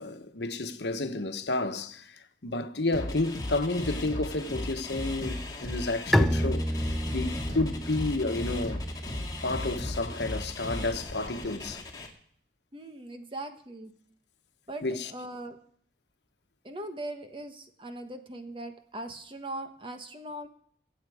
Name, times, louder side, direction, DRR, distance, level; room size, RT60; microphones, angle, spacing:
voice 1, 0.0-8.9 9.4-11.8 14.8-15.1, left 2 dB, 80° left, 1.1 m, -31 dB
sound 1, 2.9-12.1, left 1 dB, 20° left, 2.2 m, -36 dB
Bowed string instrument, 6.1-11.7, equal, ahead, 0.6 m, -31 dB
voice 2, 12.7-13.9 14.7-15.6 16.6-20.5, right 1 dB, 30° right, 1.3 m, -40 dB
23.5 x 8.3 x 4.9 m
head